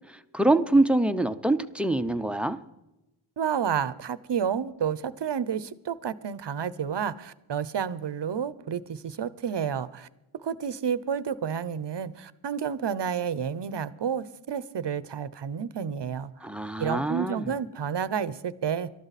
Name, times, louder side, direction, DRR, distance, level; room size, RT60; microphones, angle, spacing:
voice 1, 0.1-2.6 16.4-17.5, right 2 dB, ahead, 0.7 m, -25 dB
voice 2, 3.4-10.1 10.4-16.3 16.8-18.9, right 7 dB, 60° right, 0.8 m, -30 dB
22.0 x 12.5 x 4.2 m
wide cardioid pair, 85°, 47 cm